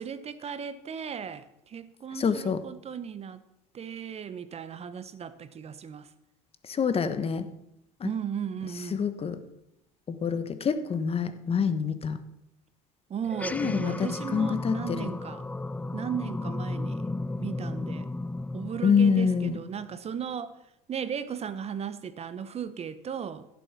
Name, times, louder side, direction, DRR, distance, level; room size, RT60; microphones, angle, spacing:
voice 1, 0.0-3.4 3.7-6.1 8.0-9.1 13.1-15.4 15.9-17.1 17.4-18.1 18.5-20.6 20.9-23.5, right 7 dB, 35° right, 0.9 m, -36 dB
voice 2, 2.1-2.6 6.7-7.5 8.0-8.1 8.9-9.4 10.2-12.2 13.5-15.1 18.8-19.6, left 6 dB, 30° left, 1.2 m, -26 dB
sound 1, 13.3-20.0, left 2 dB, 10° left, 0.5 m, -34 dB
15.5 x 7.1 x 6.1 m
hypercardioid pair, 85°, 19 cm